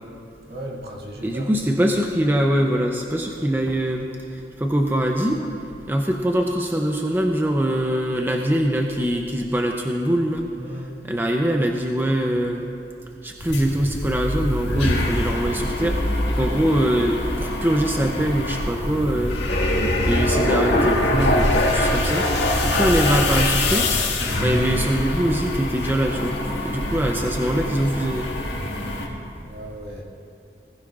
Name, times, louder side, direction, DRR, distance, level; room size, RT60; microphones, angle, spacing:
voice 1, 0.5-1.5 10.6-11.0 29.4-30.0, right 1 dB, 65° right, -3 dB, 2.2 m, -36 dB
voice 2, 1.2-5.5 5.9-10.5 11.0-12.7 13.2-19.4 20.0-22.3 22.6-23.9 24.4-28.3, right 1 dB, 10° right, 2 dB, 0.6 m, -23 dB
sound 1, 13.4-29.1, left 1 dB, 90° left, 1.8 m, -23 dB
19.5 x 15.5 x 2.5 m, 2.7 s
head